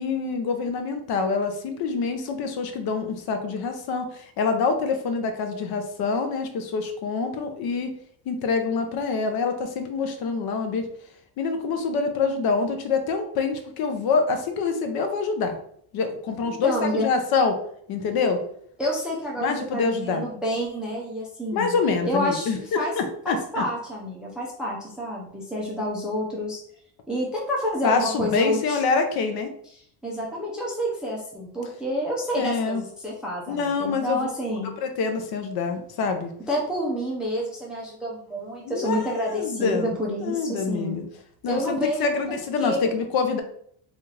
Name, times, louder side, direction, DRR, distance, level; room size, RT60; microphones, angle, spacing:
voice 1, 0.0-8.0 8.3-10.9 11.4-15.6 15.9-17.6 17.9-18.4 19.4-20.2 21.5-23.6 27.8-29.5 32.4-32.8 33.5-36.3 38.6-40.0 40.2-41.0 41.4-43.4, left 4 dB, 55° left, 6 dB, 0.6 m, -26 dB
voice 2, 16.4-17.1 18.8-21.7 22.0-22.9 23.2-26.6 27.1-28.8 30.0-34.7 36.5-41.0 41.5-42.1 42.6-42.9, equal, ahead, -3 dB, 0.4 m, -29 dB
4.1 x 2.5 x 3.1 m, 0.65 s
cardioid pair, 170°, 45 cm